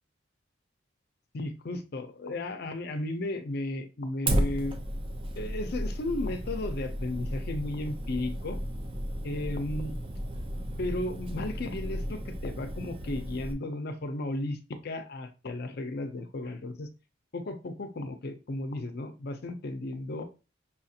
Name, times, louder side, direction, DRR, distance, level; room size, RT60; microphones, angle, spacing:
voice 1, 1.3-4.8 5.4-8.6 9.2-10.0 10.8-16.9 17.3-20.2, left 2 dB, 55° left, 8 dB, 0.5 m, -34 dB
Fire, 4.3-13.5, equal, 30° right, 0.5 m, -34 dB
5.6 x 2.4 x 2.7 m, 0.31 s
head